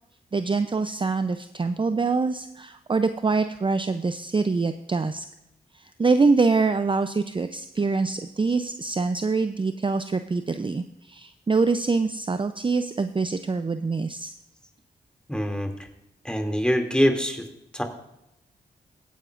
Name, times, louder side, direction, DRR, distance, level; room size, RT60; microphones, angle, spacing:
voice 1, 0.3-5.3 5.7-14.3, right 4 dB, 30° right, 10 dB, 0.5 m, -25 dB
voice 2, 15.3-15.9 16.2-17.4 17.7-17.8, equal, 5° left, 4 dB, 2.5 m, -24 dB
16.0 x 9.3 x 2.5 m, 0.88 s
cardioid pair, 45°, 18 cm